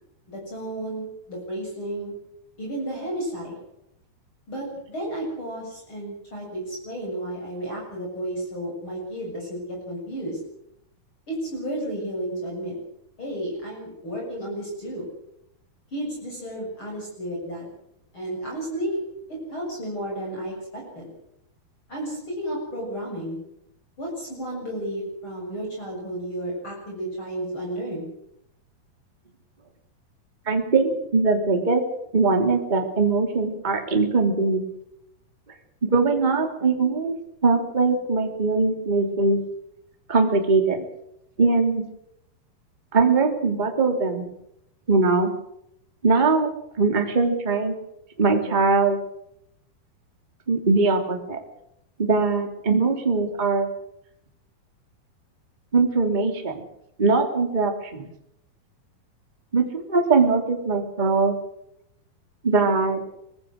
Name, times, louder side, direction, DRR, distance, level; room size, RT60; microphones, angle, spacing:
voice 1, 0.3-2.1 2.6-3.6 4.5-10.4 11.3-12.8 13.2-15.0 15.9-17.7 18.1-19.0 19.3-21.1 21.9-23.4 24.0-28.1, right 1 dB, 30° left, -2 dB, 7.9 m, -32 dB
voice 2, 30.5-31.8 32.1-34.6 35.8-37.2 37.4-39.4 40.1-40.8 41.4-41.8 42.9-44.3 44.9-45.3 46.0-46.5 46.8-47.7 48.2-49.0 50.5-51.4 52.0-53.7 55.7-56.6 57.0-58.0 59.5-61.3 62.4-63.0, right 3 dB, 15° right, 3 dB, 2.7 m, -21 dB
24.5 x 21.0 x 6.4 m, 0.78 s
omnidirectional pair, 4.3 m